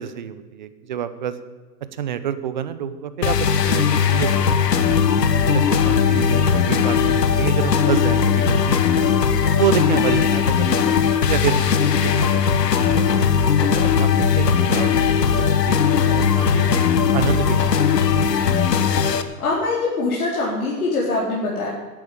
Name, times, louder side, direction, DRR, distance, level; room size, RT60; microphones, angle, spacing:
voice 1, 0.0-1.4 1.9-3.8 4.1-4.9 5.5-8.8 9.4-13.1 13.6-14.1 14.3-16.7 17.1-17.8 18.1-18.4, right 9 dB, 30° right, 13 dB, 0.7 m, -28 dB
sound 1, 3.2-19.2, left 7 dB, 90° left, 1.4 m, -18 dB
voice 2, 19.4-21.7, left 3 dB, 65° left, -5 dB, 4.1 m, -23 dB
11.0 x 9.7 x 8.8 m, 1.4 s
hypercardioid pair, 160°, 47 cm